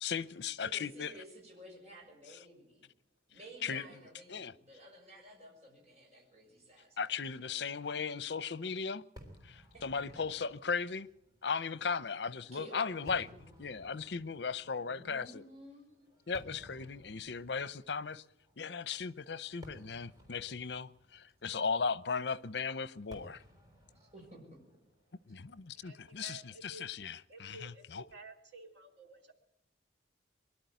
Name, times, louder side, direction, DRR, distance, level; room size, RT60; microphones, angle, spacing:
voice 1, 0.0-1.1 3.6-3.9 4.3-4.5 7.0-9.0 9.4-11.1 11.4-13.3 13.6-15.4 16.3-18.2 18.6-23.4 25.3-28.0, left 5 dB, 75° left, 0.7 m, -37 dB
voice 2, 0.6-2.9 3.3-7.0 7.4-7.6 10.1-10.2 12.5-13.7 14.8-15.9 24.1-24.4, right 1 dB, 35° right, 6.5 m, -53 dB
Fireworks, 9.2-26.5, equal, 20° right, 3.5 m, -59 dB
voice 3, 25.8-26.8 27.3-29.3, right 3 dB, 85° right, 2.9 m, -53 dB
23.5 x 12.0 x 9.3 m
head